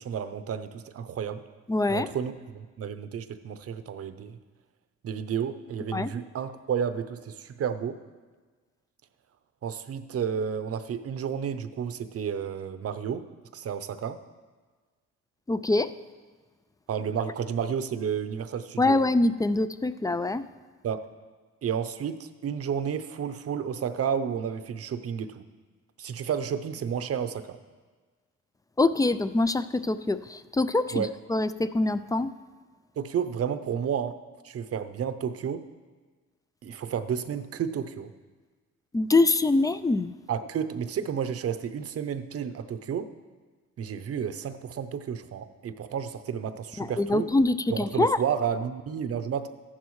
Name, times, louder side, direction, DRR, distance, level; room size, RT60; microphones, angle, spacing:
voice 1, 0.0-1.4 1.9-4.4 5.0-8.0 9.6-13.2 13.5-14.2 16.9-19.0 20.8-21.0 21.6-25.4 26.0-27.6 30.9-31.1 33.0-34.2 34.4-35.6 36.6-38.1 40.3-43.1 43.8-47.3 47.7-49.5, right 7 dB, 50° right, 11 dB, 0.7 m, -31 dB
voice 2, 1.7-2.1 5.9-6.1 15.5-15.9 18.8-20.4 28.8-32.3 38.9-40.1 46.8-48.2, left 2 dB, 10° left, 13 dB, 0.3 m, -24 dB
14.0 x 11.5 x 3.2 m, 1.4 s
cardioid pair, 90°, 30 cm